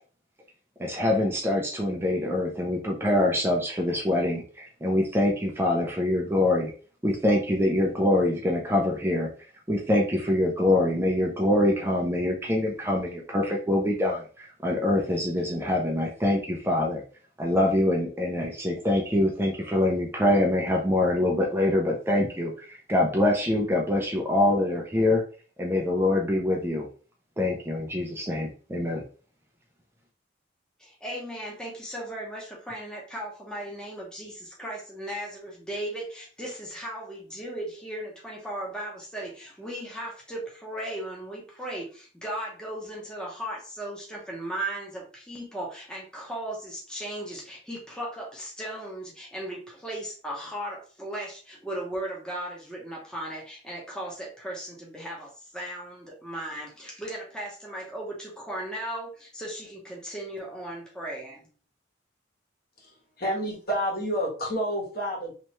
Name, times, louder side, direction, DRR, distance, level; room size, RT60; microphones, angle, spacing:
voice 1, 0.8-6.7 7.0-9.3 9.7-17.0 17.4-25.2 25.6-26.9 27.4-29.0, left 1 dB, 10° right, 0 dB, 0.5 m, -24 dB
voice 2, 30.8-61.4, right 1 dB, 5° left, -3 dB, 0.9 m, -36 dB
voice 3, 62.8-65.3, equal, 50° left, -3 dB, 1.5 m, -29 dB
3.3 x 3.0 x 3.1 m, 0.39 s
head